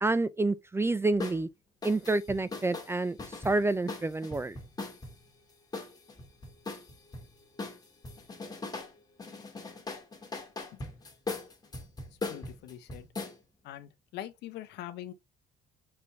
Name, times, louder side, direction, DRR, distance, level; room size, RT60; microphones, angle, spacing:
voice 1, 0.0-1.5 1.8-3.2 3.4-4.6, right 2 dB, 15° right, 0.5 m, -28 dB
sound 1, 1.2-1.4 1.8-5.2 5.7-7.3 7.6-8.9 9.2-13.4, left 3 dB, 25° left, 2.3 m, -39 dB
voice 2, 12.3-13.1 13.6-15.1, left 12 dB, 80° left, 1.0 m, -43 dB
5.7 x 5.3 x 3.3 m
cardioid pair, 110°, 17 cm